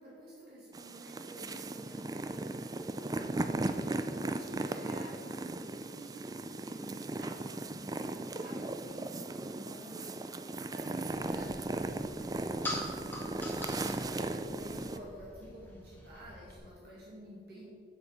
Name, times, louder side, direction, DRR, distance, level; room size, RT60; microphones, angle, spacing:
voice 1, 0.0-2.7 3.0-6.3 6.7-10.3 10.6-13.6 14.1-17.7, right 1 dB, 60° right, -6 dB, 2.3 m, -50 dB
sound 1, 0.7-15.0, right 2 dB, 20° right, 0.4 m, -37 dB
sound 2, 11.1-16.6, left 1 dB, 10° left, 2.1 m, -45 dB
8.2 x 8.1 x 6.6 m, 2.3 s
head